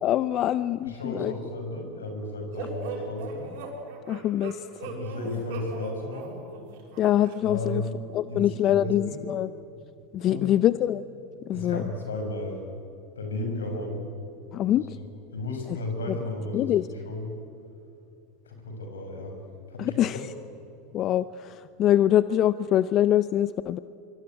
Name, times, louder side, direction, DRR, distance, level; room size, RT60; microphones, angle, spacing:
voice 1, 0.0-1.3 4.1-4.6 7.0-7.8 8.1-9.5 10.1-11.0 11.5-11.8 14.5-14.8 16.1-16.2 16.5-16.9 19.8-20.2 20.9-23.8, left 12 dB, 45° left, 15 dB, 0.6 m, -24 dB
voice 2, 0.8-3.5 4.8-6.4 7.4-9.3 10.3-10.7 11.5-12.6 13.2-14.0 15.0-15.1 15.3-17.3 18.5-19.3 19.7-20.3, left 2 dB, 85° left, 4 dB, 6.4 m, -34 dB
sound 1, 2.6-7.4, right 4 dB, 65° right, 6.9 m, -39 dB
24.5 x 24.0 x 9.2 m, 2.8 s
hypercardioid pair, 85°, 0 cm